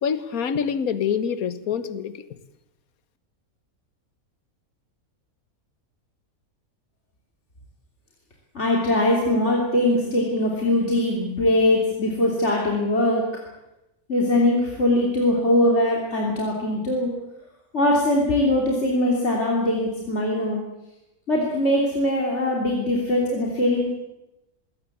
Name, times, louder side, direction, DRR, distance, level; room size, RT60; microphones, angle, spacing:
voice 1, 0.0-2.1, left 7 dB, 75° left, 13 dB, 1.6 m, -25 dB
voice 2, 8.5-13.2 14.1-17.1 17.7-20.6 21.3-24.0, left 1 dB, 50° left, -2 dB, 3.4 m, -21 dB
21.5 x 17.5 x 8.4 m, 0.95 s
omnidirectional pair, 1.5 m